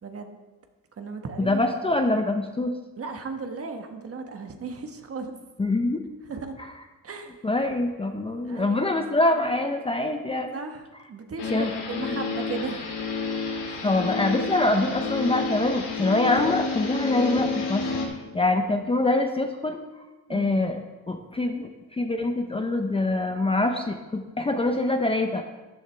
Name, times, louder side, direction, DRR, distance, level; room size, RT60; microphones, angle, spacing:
voice 1, 0.0-0.4 1.0-1.6 2.0-2.2 3.0-5.3 6.3-6.6 7.0-7.4 8.4-8.9 10.5-12.9 13.7-13.9 20.3-20.5, right 4 dB, 35° right, 5 dB, 1.4 m, -36 dB
voice 2, 1.5-2.7 5.6-6.0 6.6-6.7 7.4-10.5 11.5-12.1 13.8-17.8 18.1-19.8 20.3-20.8 21.1-25.4, left 2 dB, 15° left, 4 dB, 0.7 m, -25 dB
sound 1, 11.4-18.0, left 4 dB, 75° left, 2.8 m, -30 dB
13.5 x 11.0 x 3.4 m, 1.2 s
cardioid pair, 120°, 39 cm